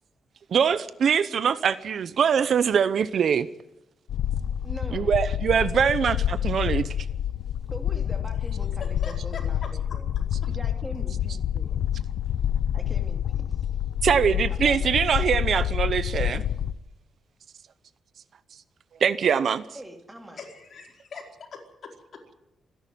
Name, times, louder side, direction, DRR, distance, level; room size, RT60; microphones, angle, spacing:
voice 1, 0.5-3.5 4.9-6.2 6.4-6.9 14.0-16.4 19.0-19.6, right 7 dB, 55° right, 15 dB, 0.7 m, -23 dB
sound 1, 4.1-16.7, left 10 dB, 80° left, 0.7 m, -28 dB
voice 2, 4.6-5.2 7.7-10.1 10.4-11.8 12.7-13.7 14.5-15.2 19.7-20.4, right 1 dB, 10° right, 4 dB, 2.9 m, -42 dB
voice 3, 9.0-9.7 20.4-22.4, left 5 dB, 50° left, 1 dB, 4.7 m, -42 dB
25.5 x 11.0 x 9.4 m, 0.88 s
cardioid pair, 130°, 0 cm